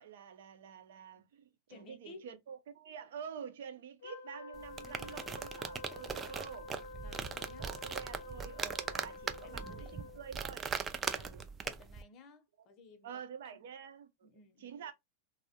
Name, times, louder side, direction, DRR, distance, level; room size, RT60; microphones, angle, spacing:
voice 1, 0.0-6.7 7.6-10.8 11.1-11.5 13.0-14.3 14.6-14.9, right 7 dB, 75° right, 0.6 m, -48 dB
voice 2, 1.7-2.3 7.0-7.8 9.4-10.0 11.0-11.4 11.6-13.6 14.2-14.9, left 3 dB, 40° left, 0.6 m, -57 dB
Wind instrument woodwind instrument, 4.0-10.3, left 3 dB, 80° left, 0.6 m, -49 dB
sound 1, 4.5-12.0, right 6 dB, 25° right, 0.4 m, -40 dB
2.2 x 2.0 x 2.8 m
hypercardioid pair, 110°, 0 cm